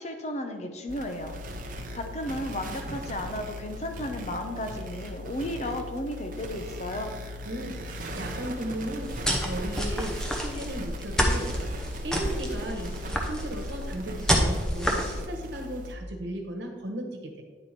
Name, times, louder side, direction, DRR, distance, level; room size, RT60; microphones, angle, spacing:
voice 1, 0.0-1.3 1.7-7.1, left 1 dB, 40° left, 5 dB, 0.8 m, -34 dB
sound 1, 0.9-16.0, left 1 dB, 45° right, 0.7 m, -39 dB
voice 2, 7.4-11.6 12.0-12.9 13.3-17.4, right 1 dB, 75° right, 3 dB, 1.3 m, -36 dB
sound 2, 9.0-15.2, equal, 5° left, 0.8 m, -29 dB
9.7 x 4.7 x 4.2 m, 1.4 s
head